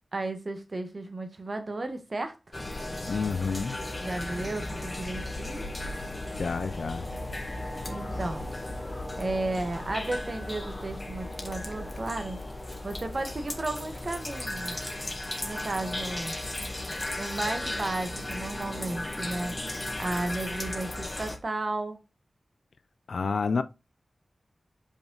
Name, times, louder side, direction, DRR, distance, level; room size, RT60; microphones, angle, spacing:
voice 1, 0.1-2.4 4.0-5.7 7.9-8.5 9.2-12.4 12.8-14.9 15.4-16.3 17.2-19.6 20.0-22.0, right 2 dB, 50° right, 1.4 m, -34 dB
sound 1, 2.5-21.4, left 1 dB, 30° left, 1.5 m, -35 dB
voice 2, 3.1-3.8 6.4-7.1 23.1-23.6, left 5 dB, 80° left, 0.6 m, -29 dB
5.3 x 5.1 x 3.9 m
wide cardioid pair, 60°, 0 cm